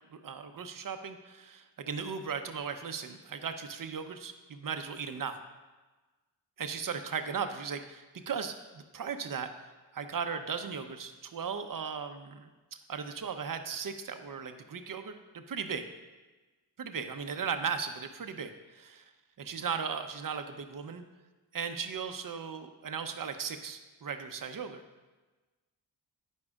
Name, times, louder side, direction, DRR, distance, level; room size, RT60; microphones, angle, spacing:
voice 1, 0.1-5.4 6.6-9.5 9.9-12.5 12.9-15.8 16.8-19.0 19.4-21.0 21.5-24.8, right 6 dB, 50° right, 7 dB, 0.8 m, -37 dB
9.6 x 9.6 x 2.4 m, 1.2 s
cardioid pair, 60°, 44 cm